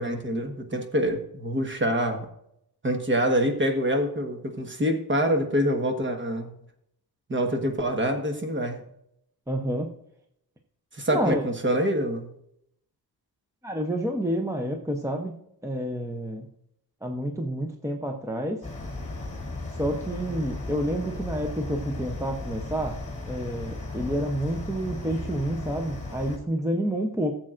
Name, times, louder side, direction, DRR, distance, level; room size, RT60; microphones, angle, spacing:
voice 1, 0.0-2.3 2.8-6.5 7.3-8.8 10.9-12.3, equal, 30° right, 5 dB, 1.3 m, -26 dB
voice 2, 9.5-9.9 11.1-11.4 13.6-15.3 15.6-16.5 17.0-18.6 19.8-23.0 23.3-27.3, equal, 10° right, 3 dB, 0.7 m, -29 dB
sound 1, 18.6-26.4, left 2 dB, 20° left, 2.3 m, -36 dB
16.0 x 7.6 x 2.5 m, 0.75 s
wide cardioid pair, 135°, 38 cm